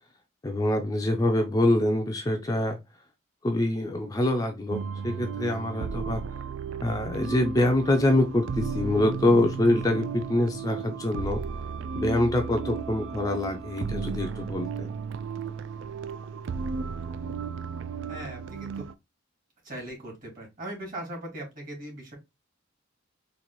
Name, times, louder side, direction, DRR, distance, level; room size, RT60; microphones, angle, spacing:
voice 1, 0.4-2.8 3.4-6.2 6.8-11.4 11.9-14.9, left 1 dB, 20° left, 0.4 m, -25 dB
sound 1, 4.7-18.9, right 5 dB, 65° right, 0.3 m, -34 dB
voice 2, 18.1-18.9 19.6-22.2, right 1 dB, 45° right, 2.1 m, -39 dB
3.9 x 2.5 x 3.0 m
head